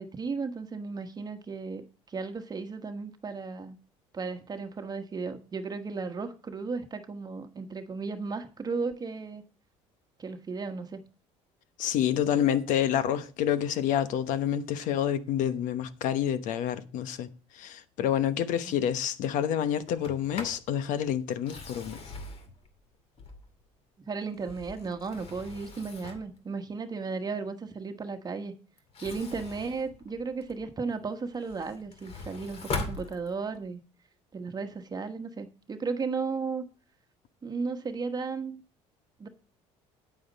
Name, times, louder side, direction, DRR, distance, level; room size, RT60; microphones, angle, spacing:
voice 1, 0.0-3.8 4.1-9.4 10.2-11.0 24.1-28.5 29.0-33.8 34.3-36.6 37.4-38.6 39.2-39.3, right 4 dB, 30° right, 1.2 m, -35 dB
voice 2, 11.8-17.3 17.5-22.0, left 10 dB, 70° left, 1.0 m, -28 dB
Sliding door, 19.9-20.7 21.3-23.7 24.2-26.4 28.8-30.7 31.2-33.7, left 3 dB, 50° left, 2.4 m, -41 dB
9.3 x 8.8 x 4.1 m
supercardioid pair, 95°, 14 cm